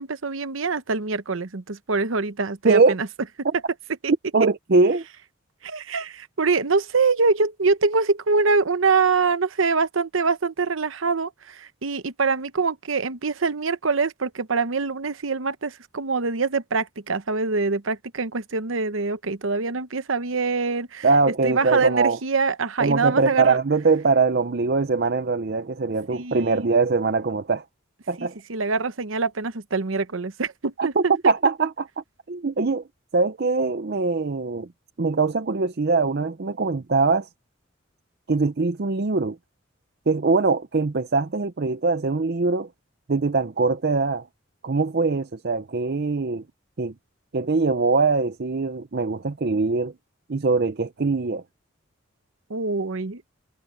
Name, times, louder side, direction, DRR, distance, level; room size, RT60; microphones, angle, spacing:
voice 1, 0.0-3.1 4.0-4.1 5.6-21.1 21.4-23.6 26.1-26.7 28.2-31.1 52.5-53.2, right 4 dB, 80° right, 0.9 m, -24 dB
voice 2, 4.3-5.0 21.0-22.2 22.8-27.6 28.1-28.4 30.8-31.9 32.3-32.8 33.1-34.7 35.0-37.3 38.3-39.4 40.1-42.7 43.1-44.3 44.6-46.4 46.8-46.9 47.3-49.9 50.3-51.4, right 4 dB, 50° right, 0.6 m, -22 dB
head